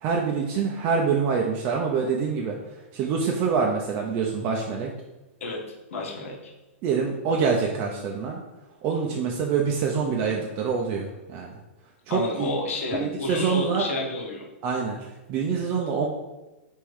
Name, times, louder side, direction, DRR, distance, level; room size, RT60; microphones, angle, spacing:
voice 1, 0.0-2.6 2.9-4.9 6.8-8.4 8.8-11.5 12.1-12.5 12.9-13.9 14.6-15.0 15.3-16.1, right 5 dB, 30° right, 0 dB, 0.5 m, -25 dB
voice 2, 5.9-6.5 12.1-14.5, left 3 dB, 80° left, -1 dB, 1.2 m, -30 dB
3.6 x 3.1 x 4.6 m, 1.0 s
hypercardioid pair, 155°, 7 cm